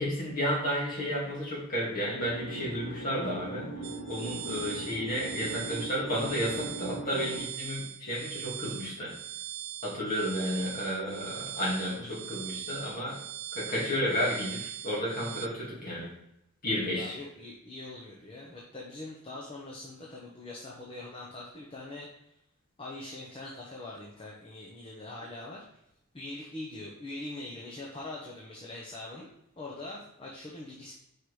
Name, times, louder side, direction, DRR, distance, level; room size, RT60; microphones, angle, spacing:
voice 1, 0.0-3.7 4.1-9.1 9.8-13.2 13.5-16.1 16.6-17.2, equal, 40° left, -5 dB, 2.3 m, -32 dB
sound 1, 2.1-7.4, right 1 dB, 65° left, 1.4 m, -40 dB
sound 2, 3.8-15.5, right 12 dB, 65° right, 0.4 m, -41 dB
voice 2, 16.9-22.1 22.8-25.6 26.1-29.3 29.6-30.9, left 2 dB, 25° left, -3 dB, 0.8 m, -42 dB
4.9 x 4.5 x 4.8 m, 0.81 s
head